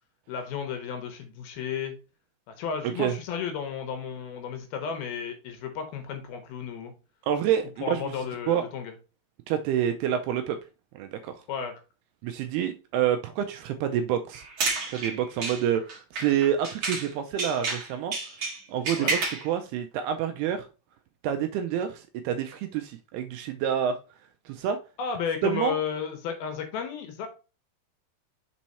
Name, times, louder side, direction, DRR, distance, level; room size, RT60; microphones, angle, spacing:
voice 1, 0.3-1.9 2.5-6.9 7.8-8.9 11.5-11.7 19.0-19.1 25.0-27.3, left 7 dB, 70° left, 2.5 m, -33 dB
voice 2, 7.3-8.1 8.5-8.7 9.5-10.6 11.0-11.4 12.2-14.4 14.9-18.1 18.7-20.7 21.2-24.0 24.5-24.8 25.4-25.8, right 9 dB, 80° right, 2.3 m, -28 dB
sound 1, 14.3-17.1 17.4-19.5, right 3 dB, 45° right, 1.7 m, -31 dB
6.2 x 4.4 x 4.1 m
omnidirectional pair, 5.0 m